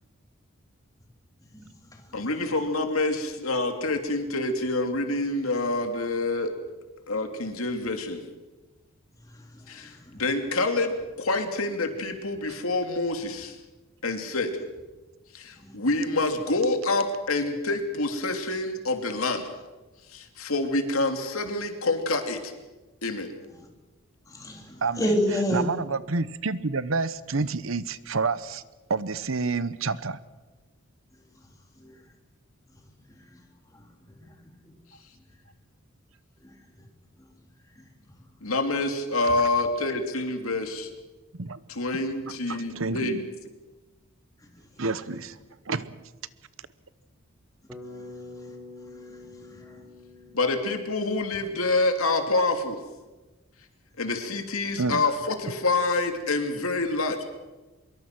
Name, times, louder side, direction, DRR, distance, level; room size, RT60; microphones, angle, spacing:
voice 1, 1.4-2.2 9.2-10.2 15.6-15.8 23.6-23.7 24.3-25.7 31.1-31.5 31.8-32.1 32.7-33.4 33.7-34.7 36.4-36.9 37.2-37.4 37.6-38.3 44.4-45.2 47.8-49.9, equal, 15° left, 2 dB, 3.3 m, -34 dB
voice 2, 2.1-6.5 7.1-8.2 9.7-13.6 14.0-14.6 15.3-19.4 20.1-22.5 23.0-23.3 38.4-40.9 41.7-43.3 50.3-52.8 54.0-57.2, left 2 dB, 90° left, 5 dB, 2.8 m, -27 dB
voice 3, 25.5-28.6 28.9-30.2 41.3-41.6 42.5-43.2 44.8-45.4 45.7-46.0 54.8-55.0, right 4 dB, 75° right, 15 dB, 1.0 m, -28 dB
Bass guitar, 47.7-51.8, left 2 dB, 5° right, 3.6 m, -46 dB
24.5 x 22.5 x 6.1 m, 1.2 s
head